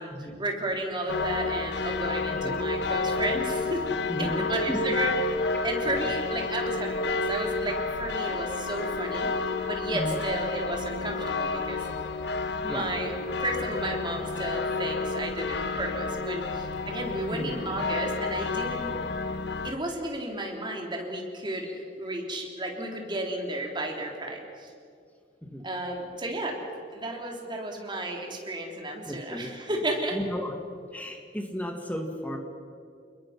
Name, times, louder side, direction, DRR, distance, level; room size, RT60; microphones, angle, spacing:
voice 1, 0.4-3.8 4.2-5.1 5.6-9.3 9.6-11.8 12.6-13.1 13.4-19.0 19.6-21.7 22.0-24.7 25.6-26.6 26.9-30.2, right 1 dB, 25° right, 1 dB, 3.6 m, -33 dB
sound 1, 1.1-19.7, left 3 dB, 70° left, 1.2 m, -30 dB
voice 2, 4.1-5.0 5.8-6.1 9.9-10.2 12.7-12.9 17.3-17.6 25.4-25.7 29.1-29.5 30.1-30.6 30.9-32.4, equal, 10° left, 3 dB, 2.0 m, -34 dB
29.5 x 21.0 x 6.0 m, 2.3 s
head